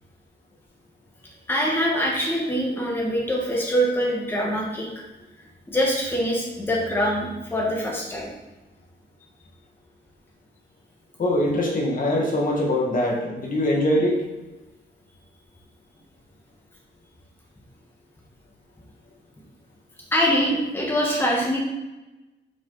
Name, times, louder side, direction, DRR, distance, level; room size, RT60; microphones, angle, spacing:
voice 1, 1.5-5.0 5.7-8.3 20.1-21.6, equal, 10° left, -3 dB, 1.4 m, -24 dB
voice 2, 11.2-14.2, left 1 dB, 50° left, -1 dB, 1.7 m, -22 dB
7.3 x 6.4 x 4.1 m, 1.0 s
wide cardioid pair, 170°, 19 cm